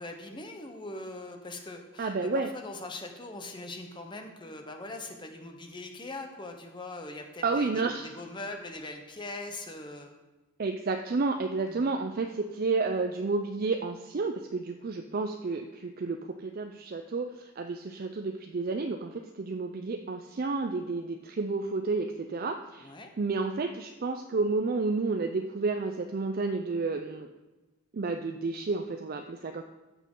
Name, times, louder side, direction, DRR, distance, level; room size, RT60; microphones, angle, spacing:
voice 1, 0.0-7.8 8.2-10.2 11.7-11.8 22.8-23.1, left 2 dB, 25° left, 4 dB, 0.8 m, -41 dB
voice 2, 2.0-2.5 7.4-8.1 10.6-27.3 27.9-29.6, right 3 dB, 45° right, 5 dB, 0.4 m, -31 dB
13.5 x 6.2 x 3.7 m, 1.1 s
head